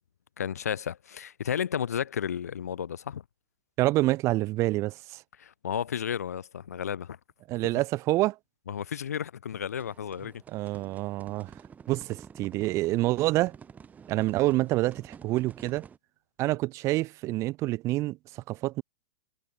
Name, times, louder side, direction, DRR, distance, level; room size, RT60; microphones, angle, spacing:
voice 1, 0.4-3.2 5.4-7.2 8.7-10.3, left 8 dB, 70° left, 4.0 m, -32 dB
voice 2, 3.8-5.2 7.5-8.4 10.5-11.5 11.9-13.5 14.1-15.9 16.4-18.8, right 18 dB, 35° right, 1.4 m, -27 dB
sound 1, 9.7-16.0, right 7 dB, 20° right, 4.0 m, -50 dB
figure-of-eight pair, 105°, 9 cm